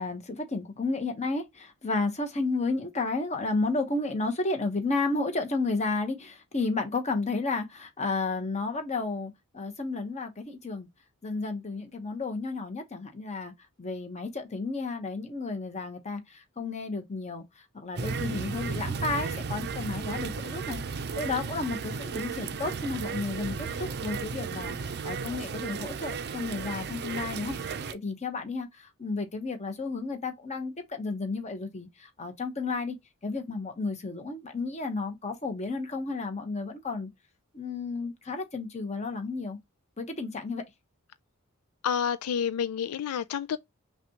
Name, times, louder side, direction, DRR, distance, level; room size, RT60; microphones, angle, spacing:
voice 1, 0.0-10.9 11.2-13.5 13.8-17.4 17.7-20.8 21.1-24.7 25.0-33.0 33.2-37.1 37.5-39.6 40.0-40.6, left 3 dB, 30° left, 1.0 m, -32 dB
sound 1, 18.0-27.9, right 5 dB, 50° right, 0.5 m, -34 dB
voice 2, 41.8-43.6, left 7 dB, 90° left, 0.4 m, -29 dB
5.7 x 2.4 x 2.9 m
head